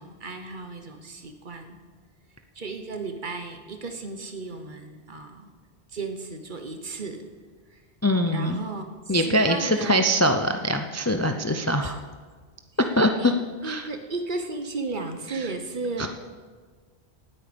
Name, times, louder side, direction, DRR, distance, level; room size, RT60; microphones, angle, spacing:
voice 1, 0.0-1.8 2.5-5.5 5.9-7.3 7.7-7.8 8.3-10.2 11.8-11.9 13.0-13.4 13.6-16.1, right 3 dB, 50° right, 6 dB, 1.2 m, -35 dB
voice 2, 8.0-8.6 9.1-12.0 13.0-13.3 13.6-13.8 16.0-16.1, equal, 20° left, 6 dB, 0.5 m, -23 dB
18.5 x 8.7 x 5.2 m, 1.5 s
omnidirectional pair, 1.1 m